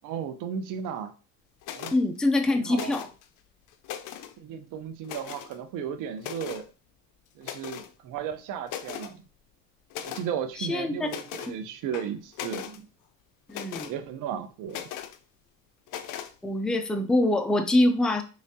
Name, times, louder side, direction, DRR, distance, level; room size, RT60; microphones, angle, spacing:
voice 1, 0.0-1.1 1.7-1.9 2.6-3.0 4.4-6.7 7.4-9.2 10.0-12.9 13.8-14.9, right 8 dB, 75° right, 8 dB, 0.8 m, -35 dB
sound 1, 1.6-2.0 2.7-3.2 3.7-4.3 5.0-5.5 6.2-6.6 7.4-7.9 8.3-8.4 8.7-9.1 9.9-10.3 11.1-11.5 11.9-12.8 13.5-13.9 14.7-15.2 15.9-16.3, left 10 dB, 70° left, 0.6 m, -38 dB
voice 2, 1.9-3.1 10.6-11.1 13.5-13.9 16.4-18.2, left 1 dB, ahead, 6 dB, 0.4 m, -24 dB
4.9 x 3.2 x 2.7 m, 0.33 s
cardioid pair, 125°, 32 cm